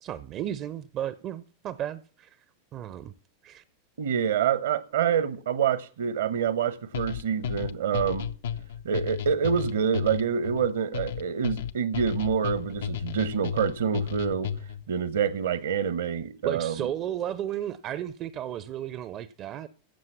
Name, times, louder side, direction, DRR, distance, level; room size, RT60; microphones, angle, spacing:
voice 1, 0.0-2.4 2.7-3.1 3.4-3.6 16.4-19.7, right 11 dB, 35° right, 0.6 m, -34 dB
voice 2, 4.0-8.3 8.8-14.5 14.9-16.9, right 7 dB, 60° right, 0.9 m, -27 dB
sound 1, 6.9-14.9, left 8 dB, 60° left, 0.5 m, -33 dB
15.5 x 7.6 x 6.0 m
figure-of-eight pair, 90°, 0 cm